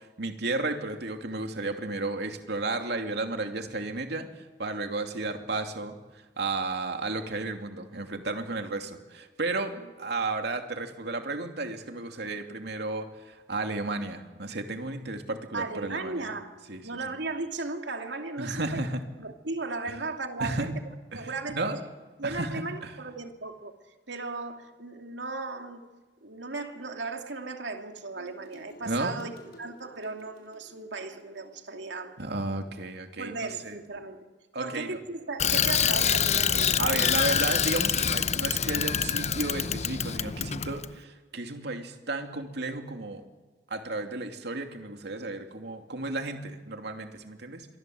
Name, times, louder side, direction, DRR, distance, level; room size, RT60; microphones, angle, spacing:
voice 1, 0.0-16.3 16.7-16.8 18.4-19.0 20.4-20.7 21.1-21.8 22.2-22.9 28.9-29.2 32.2-33.8 34.5-35.0 36.8-43.2 43.7-47.7, right 2 dB, 65° right, 2.8 m, -33 dB
voice 2, 15.5-16.6 16.8-18.8 19.2-20.7 21.1-21.8 22.2-23.7 24.1-25.8 26.2-32.2 33.2-34.2 34.6-37.1, right 3 dB, 85° right, 2.6 m, -36 dB
sound 1, 28.2-33.1, right 1 dB, 65° left, 5.7 m, -53 dB
Bicycle, 35.4-40.9, left 8 dB, 40° left, 0.8 m, -26 dB
27.0 x 24.0 x 7.9 m
head